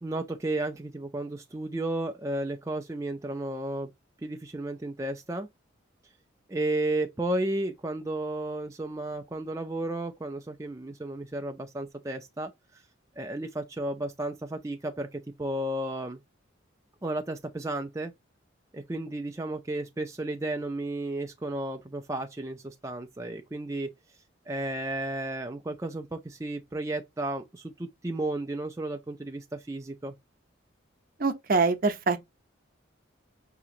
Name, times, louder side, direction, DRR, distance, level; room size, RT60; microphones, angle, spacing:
voice 1, 0.0-3.9 4.2-5.5 6.5-12.8 13.2-16.2 17.0-18.1 18.7-23.9 24.5-30.1, right 2 dB, 15° right, 0.4 m, -33 dB
voice 2, 31.2-32.2, right 4 dB, 45° right, 0.7 m, -24 dB
6.0 x 2.9 x 2.5 m
head